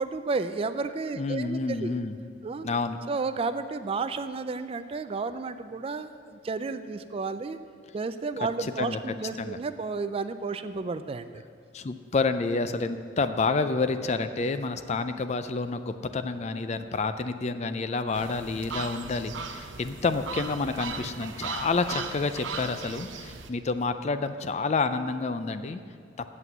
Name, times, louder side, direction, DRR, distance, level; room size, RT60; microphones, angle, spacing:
voice 1, 0.0-1.9 2.4-2.7 3.1-7.6 7.9-11.3, right 4 dB, 30° right, 11 dB, 0.3 m, -32 dB
voice 2, 1.2-2.1 2.6-3.0 8.6-9.6 11.7-25.8, left 3 dB, 35° left, 10 dB, 0.4 m, -29 dB
sound 1, 18.1-23.5, right 5 dB, 85° right, 0.7 m, -38 dB
8.3 x 7.6 x 7.9 m, 2.1 s
head